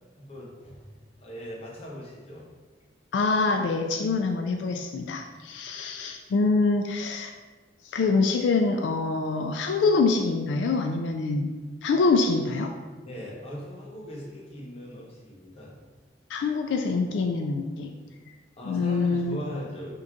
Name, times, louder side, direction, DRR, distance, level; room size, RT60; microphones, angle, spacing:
voice 1, 0.2-0.9 1.2-2.5 13.0-15.8 18.6-19.9, equal, 35° left, -4 dB, 1.0 m, -40 dB
voice 2, 3.1-7.3 7.8-11.5 11.8-12.7 16.3-17.9 18.6-19.4, left 3 dB, 80° left, 3 dB, 0.3 m, -25 dB
4.5 x 2.6 x 3.6 m, 1.3 s
head